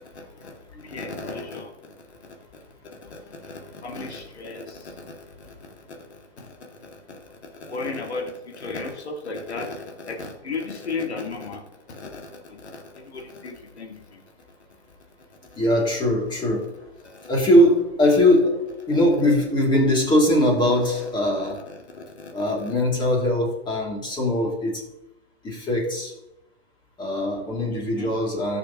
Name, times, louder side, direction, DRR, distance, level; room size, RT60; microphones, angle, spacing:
voice 1, 0.1-0.5 0.8-1.7 2.1-2.2 2.5-2.6 3.0-11.6 11.9-14.2 15.5-15.6 17.0-17.3 21.4-22.7 27.7-28.1, left 3 dB, 90° left, 1 dB, 2.1 m, -36 dB
voice 2, 0.7-1.4 15.6-16.8 17.3-21.7 22.3-24.8 25.4-26.1 27.0-28.6, left 1 dB, 15° left, -1 dB, 2.6 m, -21 dB
16.0 x 6.6 x 2.9 m, 0.86 s
hypercardioid pair, 135°, 32 cm